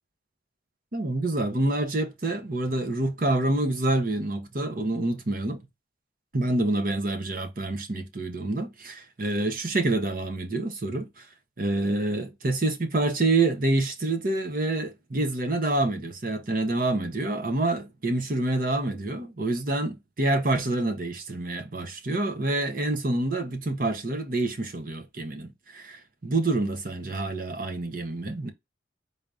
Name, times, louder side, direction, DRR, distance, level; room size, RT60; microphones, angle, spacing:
voice 1, 0.9-5.6 6.3-11.2 11.6-28.5, right 2 dB, 50° right, 0.9 m, -27 dB
4.1 x 3.3 x 2.5 m
head